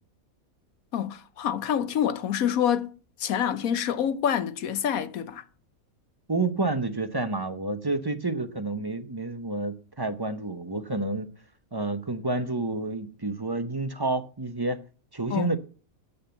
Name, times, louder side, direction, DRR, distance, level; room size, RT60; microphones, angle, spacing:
voice 1, 0.9-5.4 15.3-15.5, left 9 dB, 80° left, 1.3 m, -27 dB
voice 2, 6.3-11.3 11.7-14.8 15.1-15.6, right 2 dB, 20° right, 0.6 m, -29 dB
7.3 x 6.9 x 7.9 m
omnidirectional pair, 1.5 m